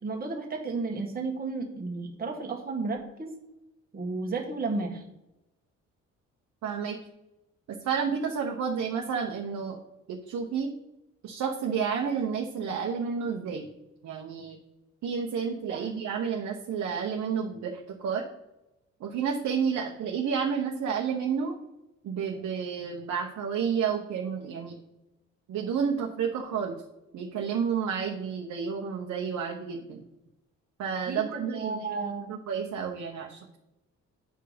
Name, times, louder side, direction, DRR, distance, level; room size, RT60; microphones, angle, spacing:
voice 1, 0.0-3.3 3.9-5.0 15.7-15.9 31.1-32.3, right 3 dB, 30° right, 0 dB, 1.7 m, -33 dB
voice 2, 6.6-7.0 7.8-9.8 10.1-10.7 11.2-13.7 14.0-14.6 15.0-18.2 19.0-21.5 22.0-24.8 25.5-26.8 27.1-30.0 30.8-31.9 32.3-33.4, right 6 dB, 65° right, 1 dB, 1.0 m, -30 dB
8.9 x 4.7 x 5.1 m, 0.95 s
cardioid pair, 90°, 30 cm